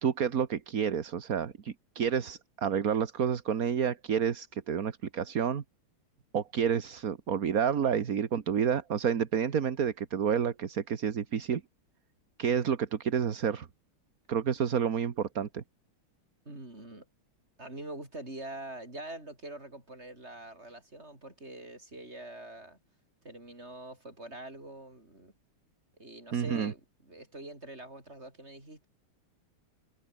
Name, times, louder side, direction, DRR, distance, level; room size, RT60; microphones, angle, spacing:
voice 1, 0.0-5.6 6.3-11.6 12.4-13.7 14.3-15.6 26.3-26.7, right 7 dB, 45° right, 1.6 m, -29 dB
voice 2, 16.5-17.1 17.6-22.8 23.2-25.3 26.0-28.9, right 1 dB, 30° right, 7.1 m, -44 dB
omnidirectional pair, 2.4 m